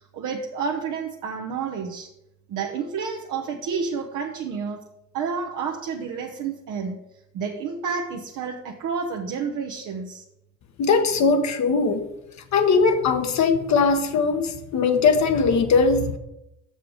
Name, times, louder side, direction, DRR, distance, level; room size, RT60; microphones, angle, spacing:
voice 1, 0.1-2.1 2.5-4.8 5.1-7.0 7.3-10.2, right 5 dB, 85° right, 1 dB, 0.8 m, -30 dB
voice 2, 10.8-12.0 12.5-16.2, left 4 dB, 65° left, 6 dB, 1.0 m, -20 dB
6.6 x 6.3 x 5.0 m, 0.85 s
cardioid pair, 90°, 30 cm